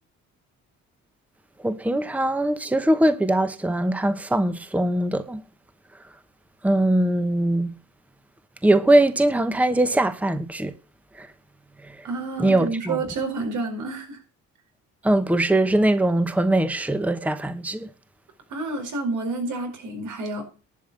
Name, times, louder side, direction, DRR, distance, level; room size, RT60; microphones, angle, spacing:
voice 1, 1.6-5.4 6.6-7.7 8.6-10.7 11.2-11.3 11.9-12.0 12.4-13.0 15.0-17.9, right 1 dB, 5° right, 1.0 m, -21 dB
voice 2, 12.0-14.2 18.5-20.4, right 3 dB, 80° right, 4.6 m, -29 dB
11.0 x 5.6 x 8.7 m
cardioid pair, 90°, 30 cm